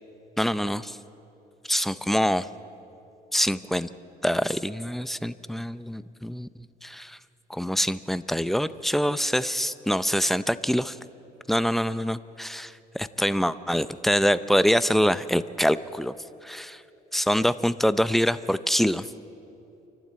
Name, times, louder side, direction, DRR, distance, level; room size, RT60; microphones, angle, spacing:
voice 1, 0.4-1.0 1.7-2.5 3.3-3.9 4.2-6.5 6.8-7.2 7.5-11.0 11.5-16.1 16.4-16.8 17.1-19.0, equal, ahead, 14 dB, 0.5 m, -25 dB
28.0 x 12.0 x 8.6 m, 2.9 s
cardioid pair, 110°, 17 cm